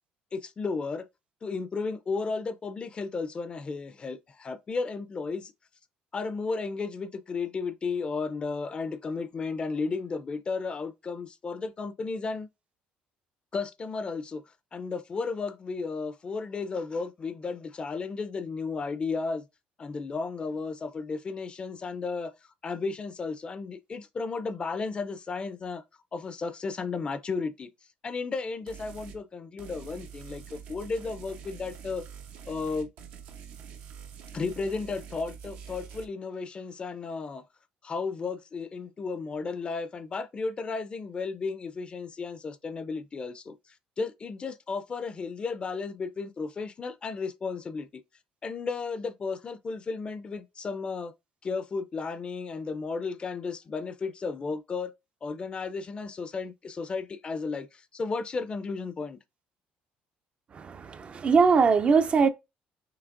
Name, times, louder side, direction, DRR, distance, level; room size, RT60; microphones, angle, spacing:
voice 1, 0.3-1.1 1.4-5.5 6.1-12.5 13.5-14.4 14.7-19.4 19.8-22.3 22.6-25.8 26.1-27.7 28.0-32.0 32.5-32.9 34.3-37.4 37.8-43.6 44.0-48.0 48.4-51.1 51.4-54.9 55.2-59.2, left 4 dB, 35° left, 0.5 m, -34 dB
sound 1, 28.7-29.2 29.6-36.1, right 7 dB, 85° right, 0.9 m, -45 dB
voice 2, 60.5-62.3, right 5 dB, 40° right, 0.4 m, -22 dB
5.9 x 2.8 x 2.5 m
cardioid pair, 105°, 3 cm